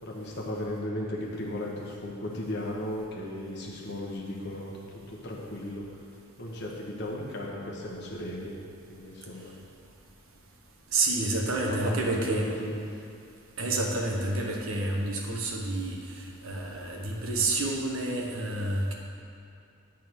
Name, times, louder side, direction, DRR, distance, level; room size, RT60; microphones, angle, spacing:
voice 1, 0.0-4.8 5.1-5.9 6.4-8.5 8.9-9.6 11.7-12.8, left 1 dB, 50° left, -3 dB, 1.1 m, -35 dB
voice 2, 10.9-12.5 13.6-18.9, right 2 dB, 70° right, 0 dB, 1.0 m, -29 dB
8.5 x 3.7 x 6.2 m, 2.5 s
head